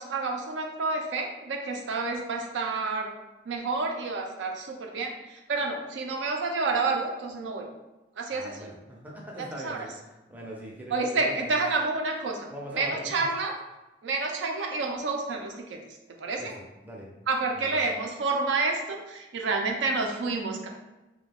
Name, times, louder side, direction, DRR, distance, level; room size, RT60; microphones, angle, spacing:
voice 1, 0.0-3.1 3.5-7.7 8.2-8.7 9.4-9.9 10.9-13.6 14.0-16.5 17.3-20.7, right 3 dB, 80° right, 2 dB, 0.4 m, -29 dB
voice 2, 8.3-9.9 10.3-11.3 12.5-13.0 16.4-17.1 17.6-17.7, right 1 dB, 10° right, -3 dB, 0.5 m, -41 dB
2.3 x 2.2 x 3.4 m, 1.0 s
head